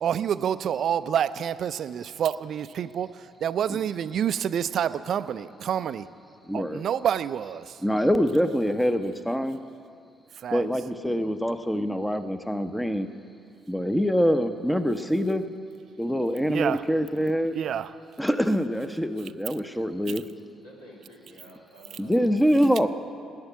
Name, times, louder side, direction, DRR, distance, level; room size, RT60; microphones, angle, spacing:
voice 1, 0.0-6.1 6.5-7.8 10.4-10.7 16.5-16.8 17.5-17.9, right 9 dB, 55° right, 15 dB, 0.4 m, -28 dB
voice 2, 6.5-6.8 7.8-9.6 10.5-13.1 13.7-15.4 16.0-17.6 18.2-20.2 22.0-22.9, equal, 5° left, 9 dB, 0.7 m, -25 dB
voice 3, 20.6-22.7, equal, 85° left, -3 dB, 2.4 m, -50 dB
11.0 x 8.8 x 9.3 m, 2.4 s
hypercardioid pair, 50°, 0 cm